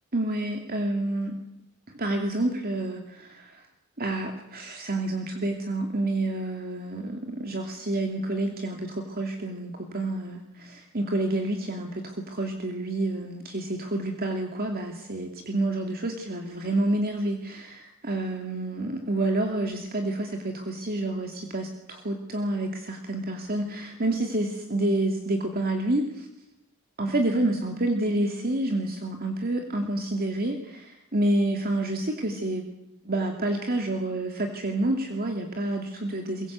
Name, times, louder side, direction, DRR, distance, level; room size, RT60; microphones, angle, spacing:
voice 1, 0.1-1.4 1.9-3.6 4.0-26.3 27.0-32.6 33.0-36.5, right 1 dB, 45° right, 3 dB, 2.6 m, -28 dB
23.0 x 23.0 x 8.2 m, 0.86 s
head